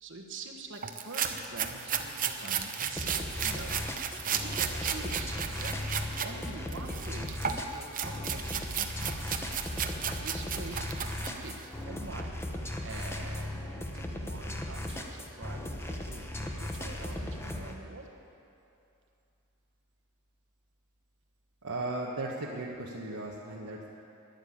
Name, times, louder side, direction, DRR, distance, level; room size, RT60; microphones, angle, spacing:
voice 1, 0.0-9.2 10.2-10.9 11.3-11.6 11.8-12.4 12.8-18.1, right 3 dB, 55° right, 3 dB, 1.3 m, -46 dB
sound 1, 0.8-6.3 6.7-11.7, right 7 dB, 40° right, 0.8 m, -34 dB
sound 2, 3.0-17.7, left 1 dB, 10° left, 1.0 m, -37 dB
voice 2, 21.6-23.9, right 2 dB, 75° right, -4 dB, 1.2 m, -36 dB
11.5 x 10.5 x 8.6 m, 2.7 s
head